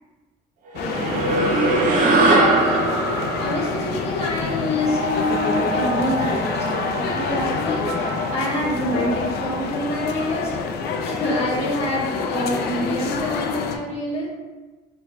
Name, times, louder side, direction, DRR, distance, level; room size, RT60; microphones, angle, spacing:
sound 1, 0.7-13.8, left 5 dB, 70° left, 0.4 m, -27 dB
voice 1, 0.8-1.4 2.1-3.0 3.3-10.6 11.0-14.3, left 1 dB, 35° left, -6 dB, 1.0 m, -27 dB
sound 2, 0.8-5.4, right 2 dB, 55° right, 0.6 m, -21 dB
sound 3, 4.7-10.8, right 1 dB, 85° right, 1.1 m, -30 dB
4.8 x 2.6 x 2.2 m, 1.3 s
cardioid pair, 110°, 17 cm